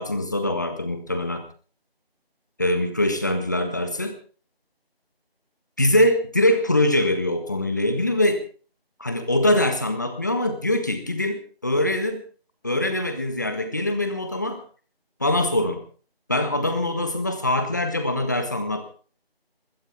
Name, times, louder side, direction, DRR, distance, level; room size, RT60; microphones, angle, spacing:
voice 1, 0.0-1.5 2.6-4.2 5.8-8.4 9.0-12.2 12.6-14.6 15.2-15.8 16.3-18.9, left 1 dB, 20° left, 8 dB, 1.5 m, -23 dB
21.0 x 17.0 x 3.7 m, 0.39 s
figure-of-eight pair, 170°, 30 cm